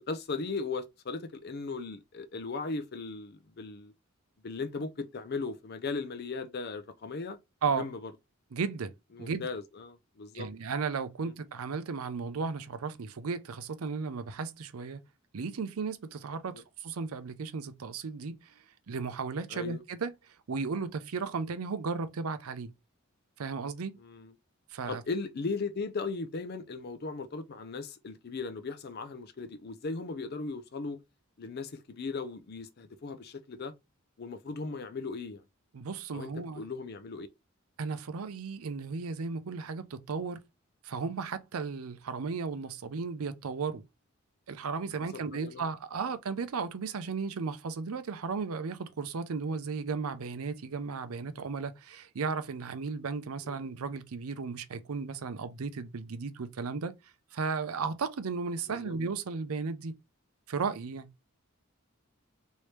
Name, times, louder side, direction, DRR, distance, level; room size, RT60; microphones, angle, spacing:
voice 1, 0.0-3.9 4.4-7.4 7.7-8.1 9.1-10.5 11.2-11.3 16.5-16.6 19.5-19.8 24.0-24.3 24.9-31.0 31.4-33.7 34.2-35.4 36.1-37.3 45.1-45.7 53.4-53.6 58.7-59.0, left 4 dB, 50° left, 0.5 m, -37 dB
voice 2, 8.5-8.9 9.2-9.5 10.3-15.0 15.3-18.5 18.9-20.1 20.5-22.7 23.4-23.9 24.7-25.0 35.7-36.6 37.8-40.4 40.8-43.8 44.5-56.9 57.3-59.9 60.5-61.1, right 5 dB, 90° right, 0.5 m, -35 dB
3.1 x 2.7 x 3.2 m
head